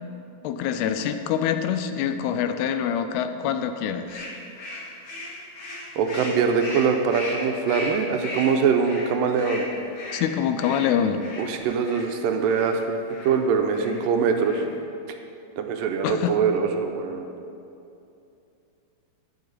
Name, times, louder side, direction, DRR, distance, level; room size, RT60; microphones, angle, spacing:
voice 1, 0.4-4.3 10.1-11.2 16.0-16.4, left 8 dB, 85° left, 9 dB, 2.6 m, -25 dB
sound 1, 4.1-12.1 12.5-12.7 13.1-13.3 13.7-14.0 14.3-14.8, left 1 dB, 45° left, 2.9 m, -36 dB
voice 2, 6.0-9.7 11.4-13.0 13.2-14.6 15.6-17.3, right 6 dB, 80° right, 5 dB, 2.1 m, -23 dB
13.5 x 8.6 x 4.1 m, 2.7 s
omnidirectional pair, 4.6 m